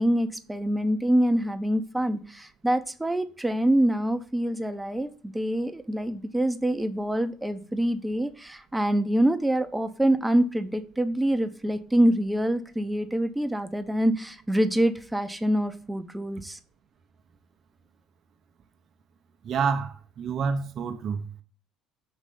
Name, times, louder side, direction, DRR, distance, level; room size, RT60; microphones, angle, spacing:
voice 1, 0.0-16.6, right 1 dB, 10° right, 0.8 m, -25 dB
voice 2, 19.4-21.4, right 5 dB, 50° right, 0.8 m, -28 dB
6.4 x 3.2 x 5.4 m
hypercardioid pair, 65°, 0 cm